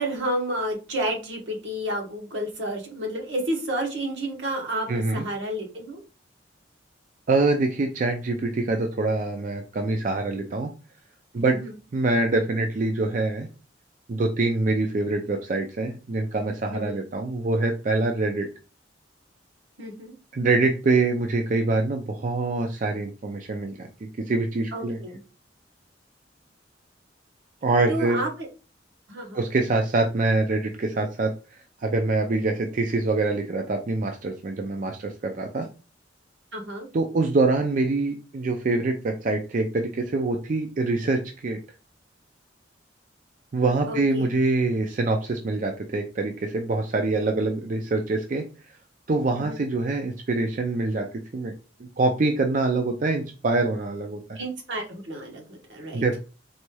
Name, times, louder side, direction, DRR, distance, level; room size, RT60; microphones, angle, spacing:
voice 1, 0.0-6.0 11.4-11.8 16.7-17.0 19.8-20.2 24.7-25.2 27.9-28.5 29.1-29.4 36.5-36.9 43.9-44.3 49.3-49.6 54.3-56.0, right 1 dB, 75° right, 1 dB, 1.2 m, -31 dB
voice 2, 4.9-5.2 7.3-10.7 11.3-11.6 11.9-13.5 14.1-18.5 20.3-25.0 27.6-28.2 29.3-31.3 31.8-35.7 36.9-41.6 43.5-48.4 49.1-51.1 51.3-51.5 51.8-54.4 55.9-56.2, right 3 dB, 45° right, 4 dB, 0.4 m, -25 dB
4.1 x 3.1 x 2.2 m, 0.33 s
head